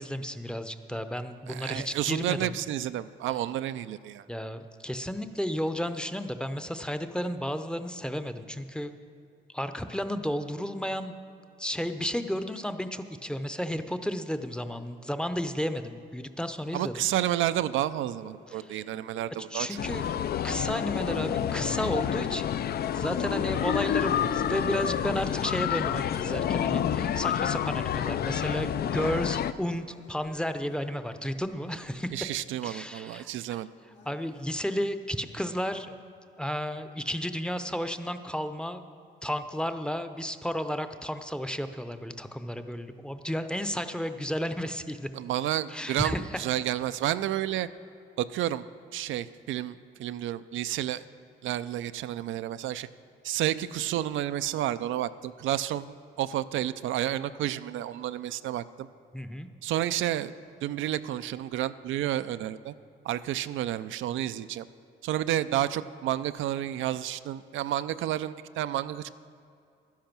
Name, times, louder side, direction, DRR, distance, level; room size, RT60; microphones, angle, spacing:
voice 1, 0.0-2.6 4.3-8.9 9.5-11.2 11.6-17.1 18.5-18.8 19.5-20.1 20.4-22.6 22.9-32.2 32.6-33.6 34.0-35.9 36.4-38.8 39.2-45.1 45.7-46.4 59.1-59.5, equal, 5° left, 9 dB, 0.6 m, -33 dB
voice 2, 1.5-4.2 16.7-19.8 32.1-33.7 45.1-47.7 48.2-48.6 48.9-51.0 51.4-52.9 53.2-58.9 59.6-60.3 60.6-62.7 63.0-64.7 65.0-69.1, right 12 dB, 75° right, 13 dB, 0.4 m, -30 dB
sound 1, 18.1-34.4, left 2 dB, 70° left, 2.5 m, -56 dB
sound 2, 19.8-29.5, left 9 dB, 50° left, 0.4 m, -29 dB
11.5 x 10.5 x 6.0 m, 2.4 s
cardioid pair, 90°, 20 cm